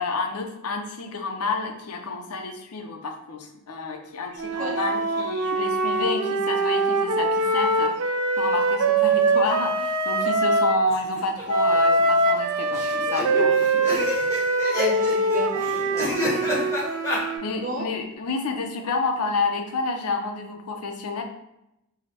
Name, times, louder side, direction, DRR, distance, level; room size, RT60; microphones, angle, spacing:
voice 1, 0.0-13.7 17.2-21.2, left 3 dB, 80° left, 5 dB, 0.5 m, -29 dB
Wind instrument woodwind instrument, 4.4-10.8 11.5-17.5, right 2 dB, 85° right, 0.5 m, -23 dB
sound 1, 10.9-11.4 11.7-11.8 12.0-12.1 12.7-17.2, left 1 dB, 15° left, 1.2 m, -29 dB
voice 2, 14.7-16.2 16.5-16.6 17.5-17.9, equal, 35° right, -1 dB, 0.7 m, -33 dB
4.8 x 2.1 x 2.8 m, 0.85 s
head